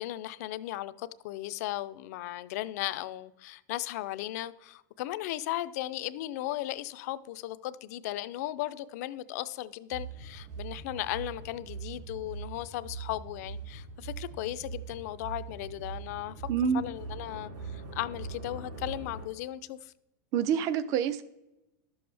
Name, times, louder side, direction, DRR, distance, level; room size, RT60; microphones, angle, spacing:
voice 1, 0.0-16.4 16.7-19.9, left 15 dB, 55° left, 0.4 m, -36 dB
sound 1, 9.9-19.3, right 4 dB, 60° right, 2.4 m, -42 dB
voice 2, 16.5-16.8 20.3-21.2, right 8 dB, 35° right, 0.4 m, -27 dB
11.5 x 6.9 x 3.4 m
supercardioid pair, 170°, 10 cm